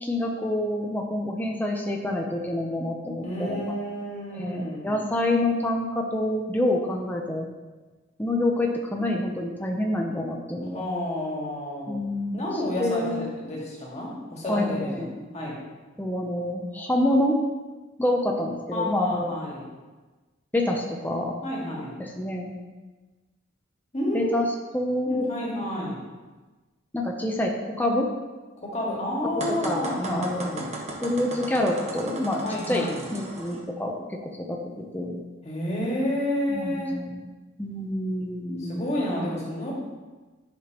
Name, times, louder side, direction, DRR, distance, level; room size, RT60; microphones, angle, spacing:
voice 1, 0.0-3.7 4.4-7.5 8.2-10.8 11.9-12.5 12.8-13.3 14.4-15.1 16.0-17.4 18.0-19.3 20.5-21.3 22.0-22.5 24.1-24.5 24.7-25.3 26.9-28.1 29.6-30.7 31.0-34.6 34.9-35.2 36.5-37.2 37.6-38.8 39.2-39.3, left 1 dB, 10° left, 0 dB, 0.6 m, -27 dB
voice 2, 3.2-5.0 10.7-12.0 12.3-15.1 15.3-15.6 18.7-19.6 21.4-22.0 23.9-24.3 25.1-26.0 28.6-30.7 32.4-33.1 35.4-36.9 38.6-39.7, left 1 dB, 35° left, -4 dB, 1.9 m, -30 dB
sound 1, 29.4-33.6, right 2 dB, 35° right, 1.2 m, -36 dB
10.5 x 6.0 x 3.0 m, 1.3 s
head